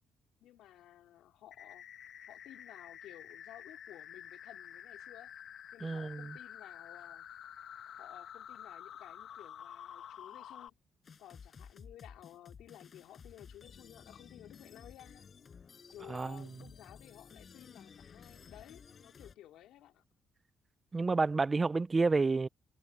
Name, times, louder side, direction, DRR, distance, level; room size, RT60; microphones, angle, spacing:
voice 1, 0.4-1.8 2.3-5.3 5.7-7.3 8.0-10.8 11.2-15.3 15.9-20.0, left 13 dB, 85° left, 3.6 m, -55 dB
sound 1, 1.5-10.7, left 9 dB, 70° left, 1.6 m, -49 dB
voice 2, 5.8-6.3 16.1-16.4 20.9-22.5, right 3 dB, 30° right, 0.6 m, -30 dB
sound 2, 11.0-19.3, left 6 dB, 45° left, 7.6 m, -55 dB
cardioid pair, 90°, 0 cm